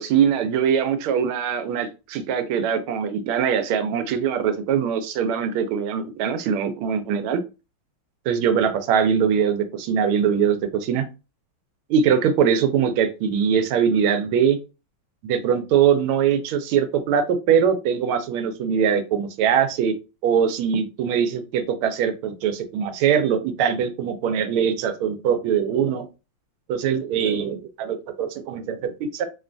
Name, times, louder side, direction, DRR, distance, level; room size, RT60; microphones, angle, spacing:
voice 1, 0.0-7.4 8.3-11.1 11.9-14.6 15.2-19.9 20.2-26.1 26.7-29.3, right 7 dB, 85° right, 8 dB, 1.4 m, -22 dB
3.6 x 2.2 x 2.5 m, 0.30 s
omnidirectional pair, 2.3 m